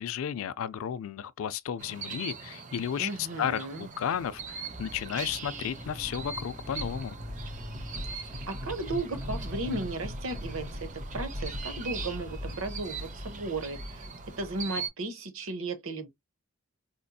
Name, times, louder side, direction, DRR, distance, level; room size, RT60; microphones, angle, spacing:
voice 1, 0.0-7.2, left 8 dB, 65° left, 0.3 m, -33 dB
sound 1, 1.8-14.9, right 5 dB, 35° right, 0.6 m, -42 dB
voice 2, 3.0-3.9 8.1-14.1 14.4-16.1, right 2 dB, 65° right, 0.8 m, -35 dB
sound 2, 4.1-14.7, left 1 dB, 20° left, 1.1 m, -44 dB
sound 3, 5.7-6.4 6.8-12.8, left 1 dB, 10° right, 1.1 m, -40 dB
4.3 x 2.6 x 2.2 m
head